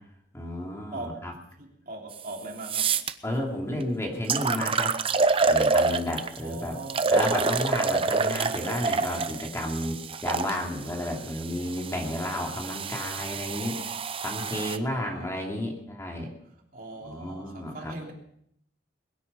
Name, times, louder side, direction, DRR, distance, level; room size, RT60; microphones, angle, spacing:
voice 1, 0.3-1.3 3.2-5.0 5.5-6.8 7.1-13.8 14.2-16.3 17.0-17.9, left 1 dB, 15° left, 2.7 m, -32 dB
voice 2, 0.9-1.3 1.6-3.1 6.4-7.2 14.8-15.4 16.7-18.1, right 2 dB, 50° right, 3.2 m, -41 dB
sound 1, 2.1-2.2 2.6-3.1 3.8-3.9 4.3-6.4 6.9-10.5 11.3-14.8, right 4 dB, 30° right, 0.7 m, -27 dB
22.0 x 9.9 x 5.7 m
head